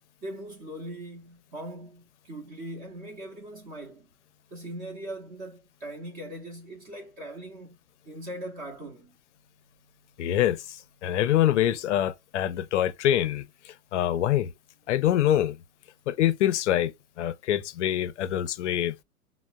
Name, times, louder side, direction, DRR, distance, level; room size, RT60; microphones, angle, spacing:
voice 1, 0.2-4.1 4.5-7.8 8.0-9.2, right 1 dB, 20° right, 0.6 m, -40 dB
voice 2, 10.2-14.5 14.9-15.6 16.1-18.9, left 11 dB, 55° left, 0.5 m, -25 dB
4.2 x 2.1 x 2.3 m
hypercardioid pair, 120°, 43 cm